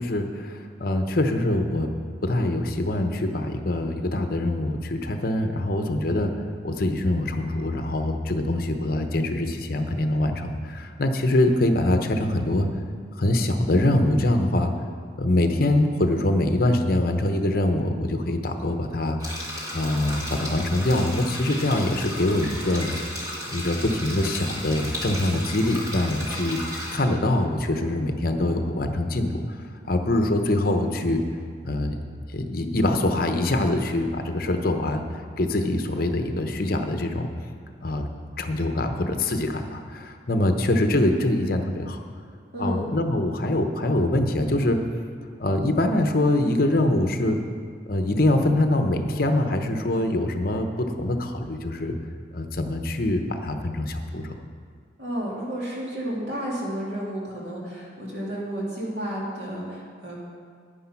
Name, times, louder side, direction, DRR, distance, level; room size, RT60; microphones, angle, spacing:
voice 1, 0.0-1.9 2.2-6.3 6.6-12.7 13.2-14.7 15.2-19.2 19.7-23.0 23.5-26.6 26.9-29.6 29.9-31.3 31.6-31.9 32.3-35.0 35.4-37.3 37.8-38.1 38.4-42.0 42.6-44.8 45.4-47.4 47.9-52.0 52.3-54.4, left 1 dB, 50° left, 5 dB, 0.9 m, -24 dB
sound 1, 19.2-27.0, equal, 20° right, 2.2 m, -34 dB
voice 2, 42.5-42.8 55.0-60.2, right 1 dB, 60° right, -5 dB, 2.7 m, -31 dB
10.0 x 9.9 x 5.8 m, 2.1 s
head